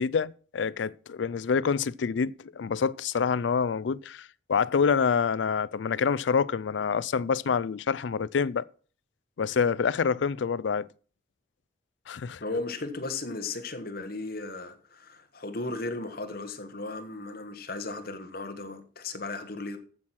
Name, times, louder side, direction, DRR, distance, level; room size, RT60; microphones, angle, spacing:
voice 1, 0.0-8.6 9.4-10.9 12.1-12.4, left 6 dB, 75° left, 0.4 m, -27 dB
voice 2, 12.4-19.8, left 3 dB, 55° left, 1.4 m, -36 dB
14.5 x 6.3 x 5.9 m
head